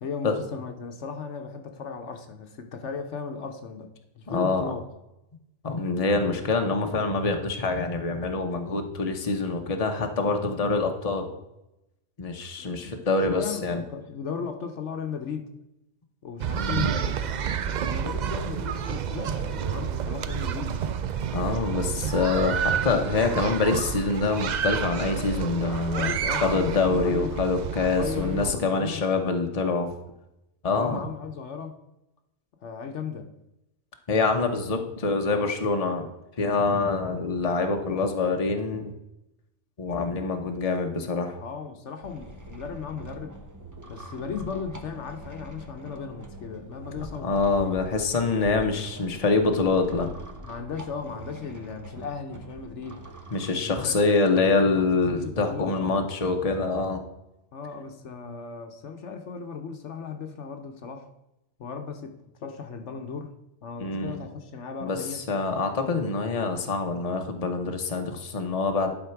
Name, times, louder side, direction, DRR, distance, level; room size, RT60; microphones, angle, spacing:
voice 1, 0.0-4.8 12.6-12.9 13.4-15.5 16.2-17.5 17.8-20.8 25.8-27.4 27.9-29.0 30.7-31.8 32.6-33.3 41.4-43.4 43.9-47.3 50.4-53.1 53.5-54.2 54.8-56.0 57.5-61.1 61.6-63.3 63.6-65.2, left 5 dB, 70° left, 6 dB, 1.2 m, -36 dB
voice 2, 4.3-4.6 5.6-11.3 12.2-13.8 16.5-17.0 21.3-26.1 26.4-29.9 30.6-31.0 34.1-36.1 36.4-38.9 39.8-41.4 47.2-50.1 53.3-57.0 63.8-64.2 64.8-68.9, left 3 dB, 30° left, 4 dB, 1.0 m, -25 dB
sound 1, 16.4-28.5, right 8 dB, 60° right, 0.4 m, -29 dB
sound 2, 42.0-53.5, right 1 dB, 15° right, 0.8 m, -43 dB
11.0 x 4.3 x 5.8 m, 0.90 s
omnidirectional pair, 1.3 m